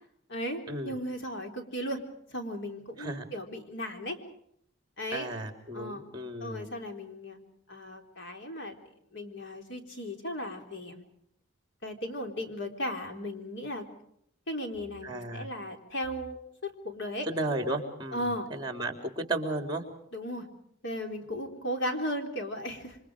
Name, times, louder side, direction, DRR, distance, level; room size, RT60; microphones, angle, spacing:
voice 1, 0.3-2.0 2.3-4.2 5.0-5.3 5.7-6.1 6.4-7.4 7.7-8.8 9.1-11.0 11.8-13.8 14.5-17.3 18.1-18.5 20.1-20.5 20.8-23.0, equal, 60° left, 4 dB, 4.0 m, -36 dB
voice 2, 3.0-3.3 5.1-6.7 15.0-15.5 17.3-19.8, right 2 dB, 20° right, 5 dB, 3.7 m, -34 dB
28.0 x 25.0 x 5.0 m, 0.72 s
head